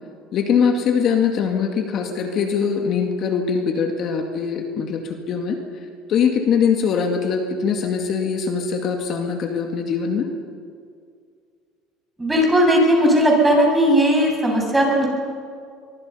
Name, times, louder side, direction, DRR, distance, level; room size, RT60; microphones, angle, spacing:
voice 1, 0.3-5.6 6.1-10.3, left 6 dB, 50° left, 4 dB, 2.1 m, -22 dB
voice 2, 12.2-15.1, equal, 10° right, -1 dB, 7.3 m, -17 dB
24.0 x 22.5 x 5.6 m, 2.2 s
supercardioid pair, 110°, 0 cm